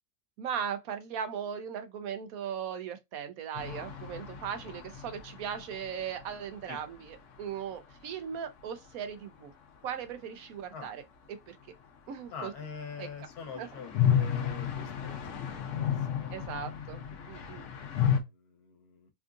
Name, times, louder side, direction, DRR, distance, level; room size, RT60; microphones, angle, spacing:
voice 1, 0.4-9.5 9.8-11.0 11.5-11.6 12.1-12.5 13.0-13.1 13.6-13.7 16.3-17.7, right 8 dB, 70° right, 1.0 m, -38 dB
sound 1, 3.6-7.4 7.6-7.7 7.9-8.0 13.0-18.2, left 8 dB, 60° left, 1.0 m, -32 dB
voice 2, 12.3-16.3 17.2-19.1, left 5 dB, 75° left, 1.4 m, -45 dB
3.6 x 2.4 x 2.4 m
omnidirectional pair, 1.6 m